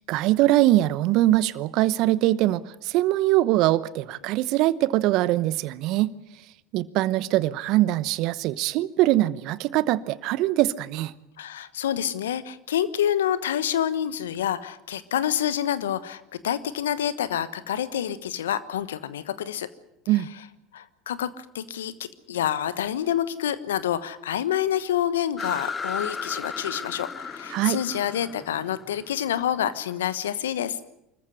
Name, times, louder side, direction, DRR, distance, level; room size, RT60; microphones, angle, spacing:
voice 1, 0.1-6.1 6.7-11.1 20.1-20.3 27.5-27.8, right 15 dB, 60° right, 0.9 m, -22 dB
voice 2, 11.4-19.7 20.7-21.9 22.3-30.8, left 10 dB, 80° left, 1.2 m, -27 dB
sound 1, 25.4-29.9, left 5 dB, 25° left, 1.0 m, -35 dB
25.0 x 14.5 x 9.7 m
hypercardioid pair, 80°, 0 cm